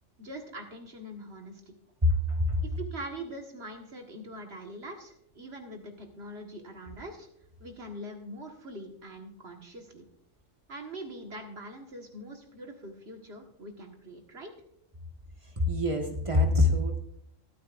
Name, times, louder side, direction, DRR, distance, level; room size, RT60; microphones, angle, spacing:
voice 1, 0.2-1.7 2.6-7.3 7.6-10.0 10.7-14.5, right 1 dB, 55° right, 3 dB, 1.8 m, -43 dB
voice 2, 2.0-2.6 15.6-17.0, left 2 dB, 25° right, 3 dB, 1.5 m, -25 dB
22.5 x 8.6 x 2.5 m, 0.70 s
omnidirectional pair, 1.3 m